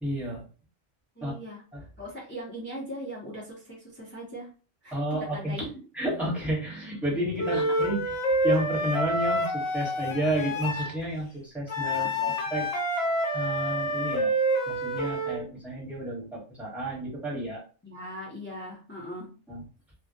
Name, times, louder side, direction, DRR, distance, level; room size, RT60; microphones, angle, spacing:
voice 1, 0.0-0.4 1.2-1.3 1.7-1.8 4.9-5.6 6.0-8.0 8.4-12.7 13.3-14.3 14.7-17.6 19.5-19.6, right 1 dB, ahead, -5 dB, 0.9 m, -31 dB
voice 2, 1.1-1.6 2.0-4.5 4.8-5.7 7.5-7.7 11.9-12.4 17.8-19.3, equal, 15° left, -2 dB, 0.4 m, -40 dB
Wind instrument woodwind instrument, 7.4-10.9 11.7-15.4, equal, 65° left, 0.8 m, -27 dB
2.1 x 2.1 x 2.7 m, 0.36 s
omnidirectional pair, 1.2 m